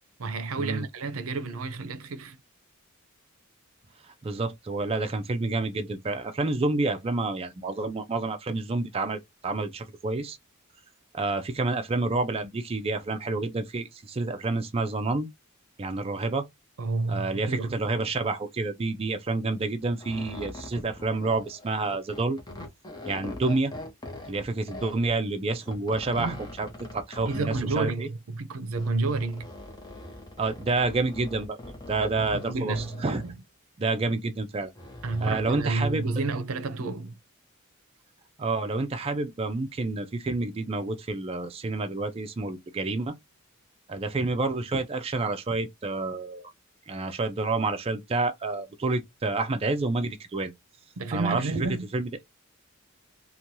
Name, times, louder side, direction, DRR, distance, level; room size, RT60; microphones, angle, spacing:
voice 1, 0.2-2.4 16.8-17.8 26.2-26.4 27.2-29.5 32.1-33.3 34.1-34.2 35.0-37.2 51.0-51.9, right 3 dB, 80° right, 0.5 m, -30 dB
voice 2, 4.2-10.4 11.1-15.3 15.8-16.5 17.1-22.4 23.1-23.7 24.3-26.7 26.9-28.1 30.4-31.6 31.9-32.7 33.0-33.2 33.8-34.7 35.2-36.0 38.4-43.1 43.9-46.5 46.9-50.5 51.1-52.1, right 3 dB, 30° right, 0.4 m, -29 dB
sound 1, 19.8-25.1 25.6-27.9 28.7-33.3 34.6-36.1, left 1 dB, 20° left, 0.7 m, -42 dB
3.1 x 2.2 x 2.6 m
head